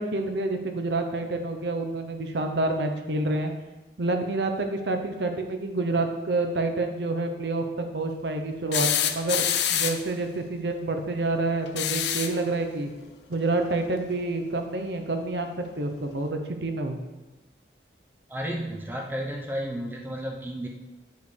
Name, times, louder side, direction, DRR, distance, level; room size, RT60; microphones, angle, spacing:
voice 1, 0.0-3.5 4.0-12.9 13.3-17.0, right 2 dB, 70° right, 5 dB, 0.7 m, -28 dB
sound 1, 8.7-10.1 11.7-12.4 14.1-14.2 15.7-15.8, left 9 dB, 75° left, 0.5 m, -26 dB
voice 2, 18.3-20.7, equal, 10° right, 0 dB, 0.7 m, -32 dB
10.5 x 5.2 x 3.3 m, 1.2 s
head